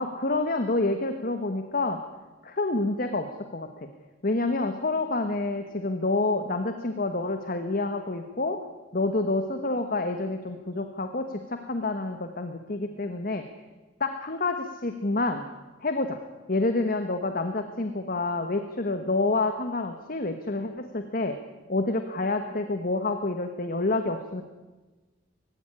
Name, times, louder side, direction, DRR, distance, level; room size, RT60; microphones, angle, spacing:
voice 1, 0.0-2.0 2.4-3.9 4.2-8.6 8.9-13.4 14.0-15.5 15.8-16.2 16.5-21.4 21.7-24.4, left 2 dB, 45° left, 7 dB, 1.3 m, -28 dB
20.0 x 16.0 x 10.0 m, 1.2 s
head